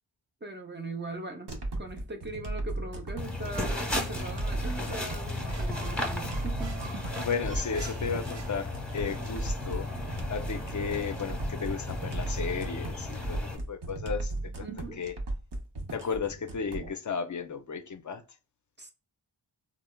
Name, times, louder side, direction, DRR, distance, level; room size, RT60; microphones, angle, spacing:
voice 1, 0.4-6.9 14.6-15.1 18.8-18.9, right 2 dB, 25° right, 0.5 m, -40 dB
sound 1, 1.5-16.9, right 2 dB, 60° right, 0.8 m, -36 dB
sound 2, 3.2-13.6, left 2 dB, ahead, 1.0 m, -35 dB
sound 3, 5.1-9.2, right 6 dB, 90° right, 0.6 m, -47 dB
voice 2, 7.2-9.9 10.3-14.3 14.6-14.7 15.0-15.2 15.9-18.2, left 6 dB, 45° left, 0.5 m, -34 dB
3.1 x 2.0 x 2.2 m
wide cardioid pair, 55°, 45 cm